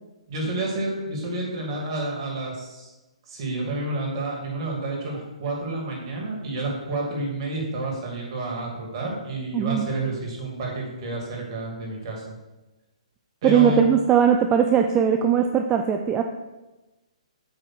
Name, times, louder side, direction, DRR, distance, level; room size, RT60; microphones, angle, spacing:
voice 1, 0.3-2.9 3.3-12.2 13.4-13.8, right 2 dB, 45° right, -1 dB, 2.5 m, -29 dB
voice 2, 9.5-9.9 13.4-16.2, right 8 dB, 20° right, 4 dB, 0.4 m, -19 dB
8.1 x 3.4 x 6.1 m, 1.1 s
figure-of-eight pair, 130°, 4 cm